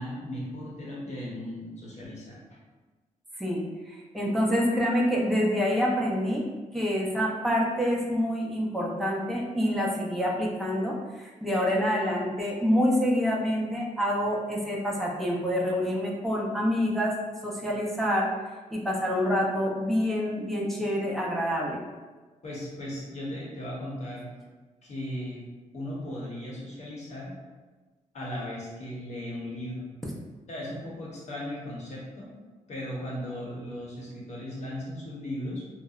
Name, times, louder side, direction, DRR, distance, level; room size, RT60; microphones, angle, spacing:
voice 1, 0.0-2.4 22.4-24.3 24.8-25.4 25.7-27.3 28.1-29.9 30.5-32.3 32.7-35.6, left 1 dB, 55° left, -5 dB, 0.8 m, -37 dB
voice 2, 3.4-6.4 6.7-17.1 17.4-18.3 18.7-21.8, equal, ahead, -4 dB, 0.4 m, -27 dB
2.7 x 2.0 x 2.3 m, 1.3 s
cardioid pair, 100°, 13 cm